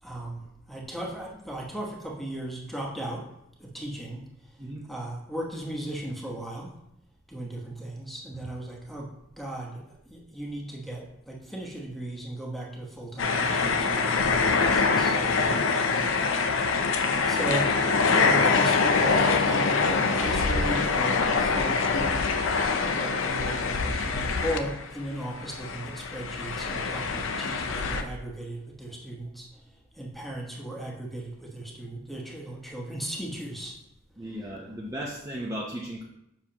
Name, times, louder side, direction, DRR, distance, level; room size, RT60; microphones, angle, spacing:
voice 1, 0.0-3.2 3.6-4.2 4.9-6.7 7.3-9.1 9.4-9.8 10.1-16.1 17.2-17.7 18.1-22.3 22.9-29.5 30.0-33.7, right 1 dB, ahead, -2 dB, 1.0 m, -36 dB
sound 1, 13.2-25.1 25.4-28.0, left 4 dB, 65° left, 0.6 m, -24 dB
voice 2, 34.2-36.0, equal, 15° right, -4 dB, 0.7 m, -36 dB
7.1 x 6.1 x 2.9 m, 0.82 s
head